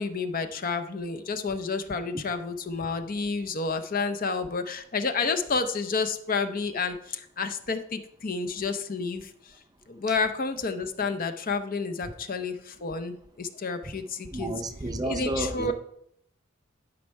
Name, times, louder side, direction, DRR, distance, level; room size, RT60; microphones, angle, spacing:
voice 1, 0.0-9.5 9.9-14.5 15.0-15.7, left 4 dB, 45° left, 0.6 m, -30 dB
voice 2, 14.2-15.7, right 1 dB, 20° right, 0.5 m, -31 dB
12.0 x 5.3 x 4.6 m
head